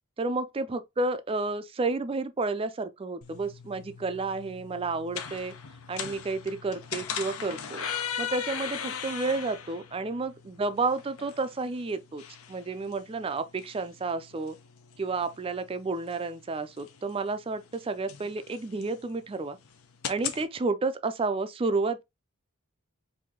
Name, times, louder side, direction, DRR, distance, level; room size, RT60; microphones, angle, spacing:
voice 1, 0.2-5.5 5.9-7.9 8.2-12.2 12.5-14.6 15.0-19.6 20.1-22.0, right 3 dB, 25° right, 0.4 m, -31 dB
sound 1, 3.2-20.4, left 8 dB, 75° left, 0.7 m, -40 dB
4.7 x 2.6 x 3.6 m
head